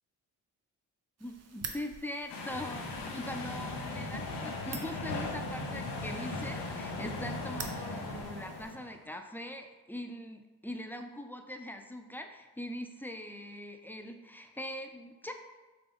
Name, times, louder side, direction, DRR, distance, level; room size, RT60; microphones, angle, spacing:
voice 1, 1.2-15.3, left 1 dB, 5° left, 5 dB, 0.4 m, -42 dB
sound 1, 1.2-8.8, right 5 dB, 40° right, 0.7 m, -48 dB
sound 2, 2.3-9.0, left 2 dB, 80° left, 0.8 m, -38 dB
5.7 x 2.4 x 3.4 m, 1.2 s
supercardioid pair, 45°, 41 cm